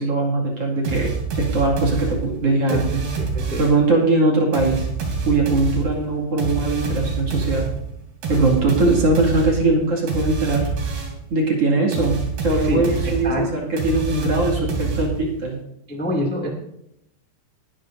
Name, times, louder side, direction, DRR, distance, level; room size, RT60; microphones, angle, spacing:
voice 1, 0.0-3.0 3.6-4.9 5.2-7.7 8.3-10.7 11.3-15.6, right 2 dB, 45° right, -2 dB, 2.5 m, -21 dB
sound 1, 0.8-3.9 4.5-11.3 11.9-15.4, right 4 dB, 65° right, 4.7 m, -26 dB
voice 2, 3.2-3.6 12.6-13.5 15.9-16.5, equal, 15° left, 0 dB, 0.3 m, -26 dB
19.5 x 12.0 x 2.6 m, 0.78 s
omnidirectional pair, 5.0 m